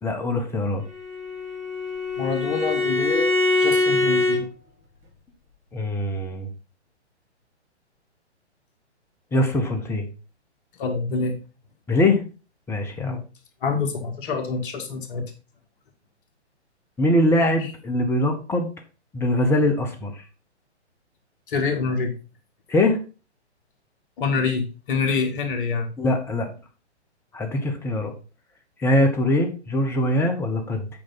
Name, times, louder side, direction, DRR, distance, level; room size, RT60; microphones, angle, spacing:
voice 1, 0.0-0.8 5.7-6.5 9.3-10.1 11.9-12.2 12.7-13.2 17.0-18.7 19.1-20.2 22.7-23.0 26.0-26.5 27.3-28.1 28.8-30.9, left 1 dB, 5° left, 5 dB, 0.9 m, -22 dB
Bowed string instrument, 0.9-4.4, left 2 dB, 35° right, 3.3 m, -23 dB
voice 2, 2.2-3.3 3.6-4.4 10.8-11.4 13.0-13.2 13.6-15.2 21.5-22.1 24.2-25.9, left 4 dB, 50° left, 4 dB, 1.9 m, -26 dB
8.6 x 5.2 x 4.1 m, 0.33 s
hypercardioid pair, 130°, 35 cm